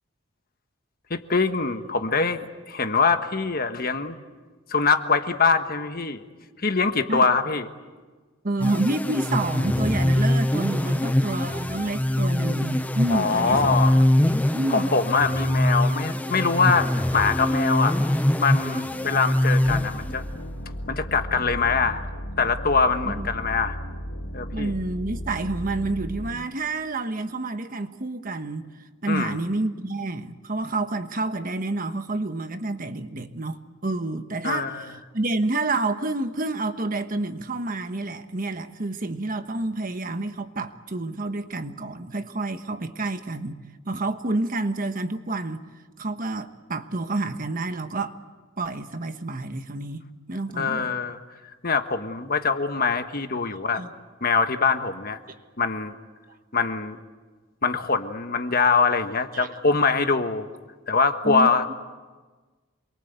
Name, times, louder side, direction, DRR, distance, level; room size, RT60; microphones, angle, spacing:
voice 1, 1.1-4.2 4.7-6.2 6.6-7.7 13.1-14.0 14.7-18.0 18.4-20.2 20.9-22.0 22.4-23.8 24.3-24.7 29.1-29.4 34.4-34.9 50.6-51.2 51.6-53.8 54.2-55.2 55.6-56.0 56.5-57.0 57.6-60.5 60.9-61.7, left 4 dB, 45° left, 1.4 m, -23 dB
voice 2, 8.4-13.8 14.5-14.9 23.0-23.3 24.5-28.7 29.0-43.6 43.8-45.6 46.0-48.2 48.6-50.0 50.3-51.0 53.7-53.9 59.3-59.5 61.2-61.7, right 2 dB, 40° right, 1.2 m, -29 dB
sound 1, 8.6-20.4, left 1 dB, 5° left, 0.7 m, -23 dB
sound 2, 19.6-26.3, equal, 60° left, 1.8 m, -35 dB
28.0 x 23.0 x 8.2 m
head